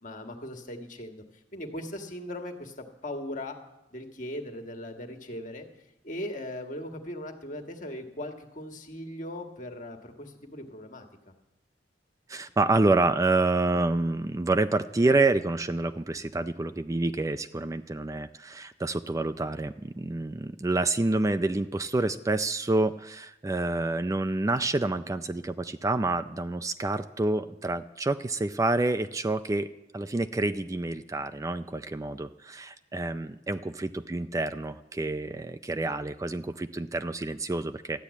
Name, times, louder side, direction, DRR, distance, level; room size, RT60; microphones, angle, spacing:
voice 1, 0.0-1.2 1.5-3.6 3.9-5.7 6.0-11.3, left 1 dB, 45° left, 4 dB, 1.8 m, -39 dB
voice 2, 12.3-29.7 29.9-38.0, right 2 dB, 20° right, 10 dB, 0.4 m, -28 dB
13.5 x 10.0 x 8.3 m, 0.92 s
head